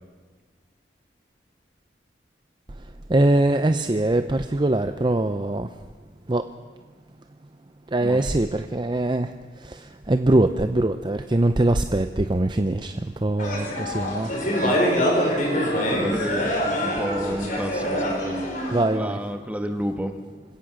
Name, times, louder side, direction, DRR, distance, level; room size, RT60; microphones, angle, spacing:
voice 1, 3.1-5.7 6.3-6.5 7.9-14.3 18.7-19.2, right 1 dB, 25° right, 9 dB, 0.6 m, -22 dB
sound 1, 13.4-18.8, equal, 45° left, 4.7 m, -25 dB
voice 2, 15.8-18.4 18.9-20.2, equal, 10° right, 6 dB, 1.5 m, -30 dB
26.5 x 17.0 x 6.4 m, 1.4 s
head